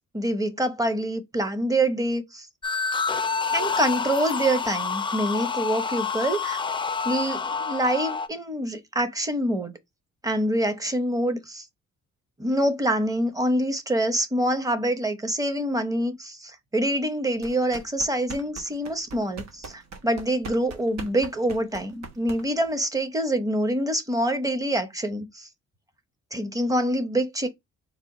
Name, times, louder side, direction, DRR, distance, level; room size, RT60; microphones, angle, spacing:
voice 1, 0.0-2.5 3.5-6.6 7.0-9.7 10.2-11.6 12.4-25.5 26.3-27.5, right 1 dB, 10° right, 0.8 m, -26 dB
sound 1, 2.6-8.3, left 5 dB, 15° left, 0.4 m, -28 dB
sound 2, 17.4-22.7, right 4 dB, 65° right, 1.1 m, -41 dB
4.2 x 2.3 x 3.8 m
cardioid pair, 90°, 30 cm